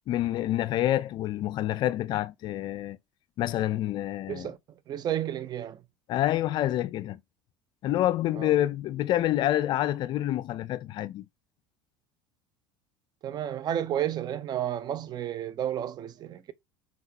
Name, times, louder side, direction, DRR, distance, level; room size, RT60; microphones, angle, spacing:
voice 1, 0.1-3.0 3.4-4.5 6.1-7.2 7.8-11.3, left 13 dB, 45° left, 0.3 m, -27 dB
voice 2, 4.3-5.8 8.3-8.5 13.2-16.5, right 10 dB, 40° right, 0.6 m, -32 dB
5.6 x 2.3 x 2.9 m
figure-of-eight pair, 70°, 11 cm